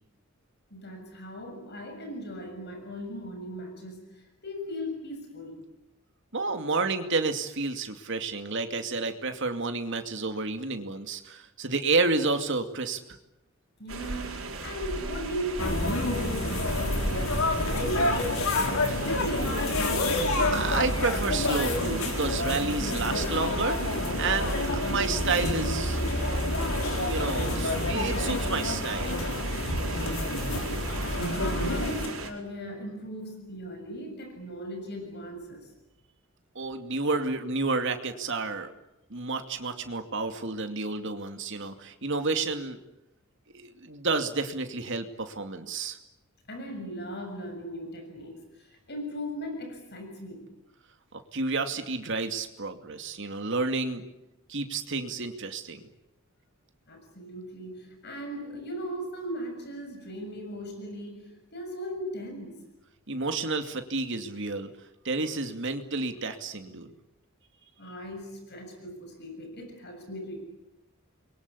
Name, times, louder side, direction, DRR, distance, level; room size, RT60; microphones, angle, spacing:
voice 1, 0.7-5.6 13.8-18.2 18.6-20.1 30.0-35.7 46.5-50.5 56.9-62.6 67.8-70.4, equal, 55° left, 4 dB, 7.0 m, -38 dB
voice 2, 6.3-13.0 20.5-23.8 24.2-26.0 26.9-29.2 36.5-38.7 39.1-42.8 43.5-46.0 51.3-54.0 54.5-55.8 63.1-64.7 65.0-66.9, right 3 dB, 60° right, 6 dB, 2.5 m, -30 dB
sound 1, 13.9-32.3, right 2 dB, 80° right, 4.7 m, -37 dB
sound 2, 15.6-32.1, left 2 dB, 85° left, 4.5 m, -28 dB
28.5 x 23.0 x 8.3 m, 0.91 s
head